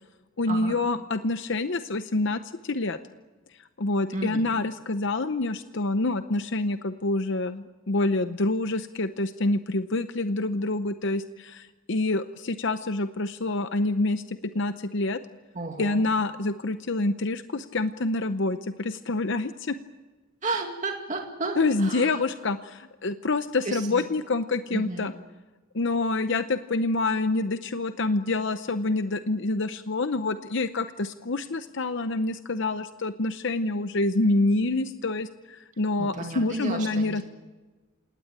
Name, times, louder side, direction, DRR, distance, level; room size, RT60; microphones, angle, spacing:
voice 1, 0.4-3.0 3.8-15.2 15.8-19.8 21.6-25.1 25.7-37.2, left 2 dB, 55° left, 10 dB, 0.8 m, -27 dB
voice 2, 4.1-4.4 15.6-16.0 20.4-22.2 23.6-24.0 24.7-25.1 36.0-37.2, right 3 dB, 35° right, 2 dB, 2.3 m, -32 dB
28.5 x 18.0 x 8.8 m, 1.3 s
head